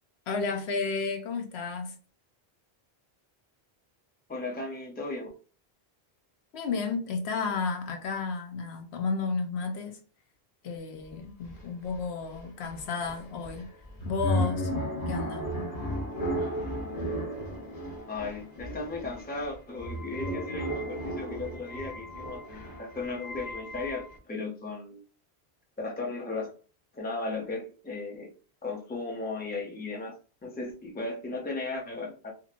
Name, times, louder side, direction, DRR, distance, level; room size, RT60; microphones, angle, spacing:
voice 1, 0.3-2.0 6.5-10.0 10.6-13.7 14.0-14.7 15.1-15.4, left 4 dB, 80° left, 0.9 m, -32 dB
voice 2, 4.3-5.3 18.1-25.0 25.8-26.5 26.9-28.3 28.6-30.2 30.4-32.3, left 3 dB, 10° left, 0.5 m, -36 dB
sound 1, 11.1-11.2 11.4-24.2, equal, 45° left, 0.9 m, -34 dB
2.8 x 2.7 x 2.5 m
omnidirectional pair, 1.1 m